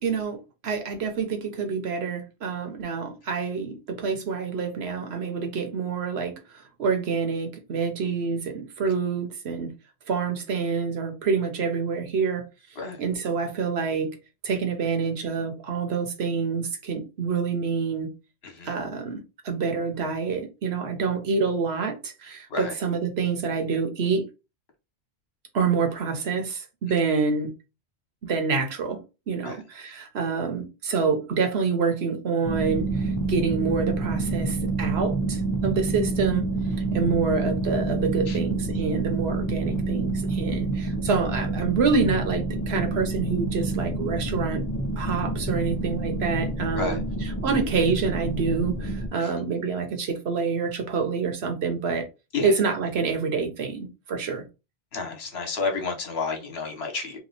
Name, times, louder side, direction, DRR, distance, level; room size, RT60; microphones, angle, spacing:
voice 1, 0.0-6.3 6.8-9.7 10.1-12.4 13.0-14.2 14.4-18.1 18.6-24.2 25.5-27.5 28.2-36.5 36.9-44.6 45.0-52.0 52.4-54.4, right 5 dB, 70° right, 1.1 m, -27 dB
voice 2, 18.4-18.7 22.5-22.7 29.4-29.6 38.3-38.4 46.7-47.0 49.2-49.3 52.3-52.5 54.9-57.2, left 4 dB, 70° left, 1.3 m, -30 dB
sound 1, 32.4-49.1, right 2 dB, 20° left, 0.5 m, -28 dB
3.0 x 2.5 x 3.9 m
omnidirectional pair, 1.1 m